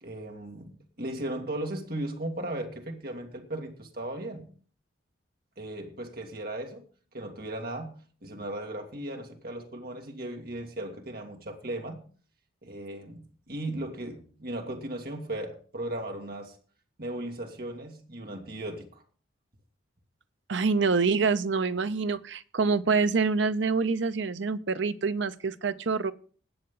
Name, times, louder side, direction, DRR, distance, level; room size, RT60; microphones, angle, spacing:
voice 1, 0.0-4.5 5.6-6.9 7.1-12.1 12.6-16.5 17.0-19.0, right 1 dB, 50° right, 2.2 m, -37 dB
voice 2, 20.5-26.1, right 4 dB, 65° right, 0.7 m, -26 dB
19.5 x 7.7 x 3.9 m
head